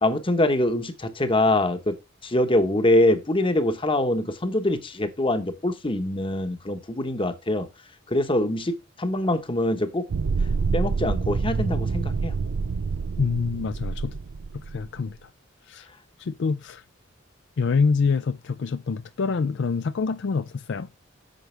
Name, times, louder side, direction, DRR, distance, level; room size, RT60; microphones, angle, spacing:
voice 1, 0.0-2.0 2.2-7.7 8.1-10.0 10.7-12.4, left 1 dB, 25° left, 1.0 m, -24 dB
sound 1, 10.1-14.9, right 4 dB, 80° right, 0.5 m, -27 dB
voice 2, 13.2-14.2 14.5-15.3 15.7-15.9 16.2-16.8 17.6-20.9, left 5 dB, 60° left, 0.4 m, -26 dB
9.3 x 6.5 x 3.3 m
head